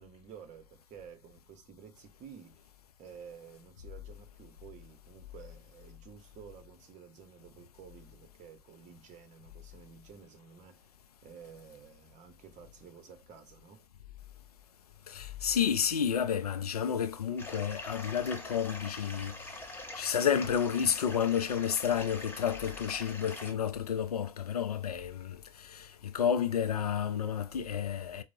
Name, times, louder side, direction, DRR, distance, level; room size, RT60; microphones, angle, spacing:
voice 1, 0.0-2.7 3.0-10.9 11.2-13.9, right 7 dB, 40° right, 1.0 m, -52 dB
voice 2, 15.1-19.6 19.9-28.2, left 8 dB, 85° left, 0.4 m, -31 dB
sound 1, 17.4-23.5, left 2 dB, 10° left, 0.9 m, -44 dB
4.6 x 2.1 x 2.7 m
figure-of-eight pair, 80°, 19 cm